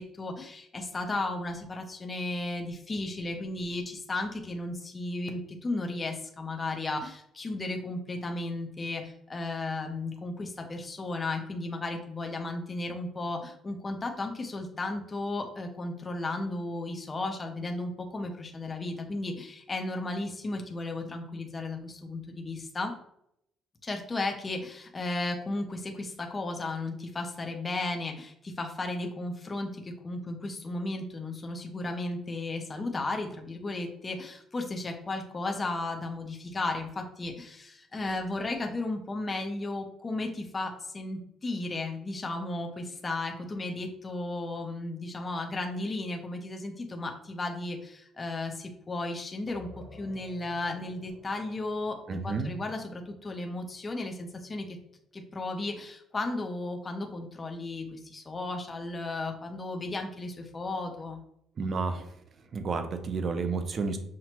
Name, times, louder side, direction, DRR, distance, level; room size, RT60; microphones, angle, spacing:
voice 1, 0.0-22.9 23.8-54.8 55.1-61.2, left 2 dB, 20° left, 3 dB, 0.6 m, -34 dB
sound 1, 49.5-54.8, left 1 dB, 55° left, 1.2 m, -53 dB
voice 2, 52.1-52.5 61.6-62.2 62.5-64.0, right 4 dB, 40° right, 7 dB, 0.5 m, -31 dB
5.8 x 2.1 x 2.9 m, 0.75 s
cardioid pair, 135°, 0 cm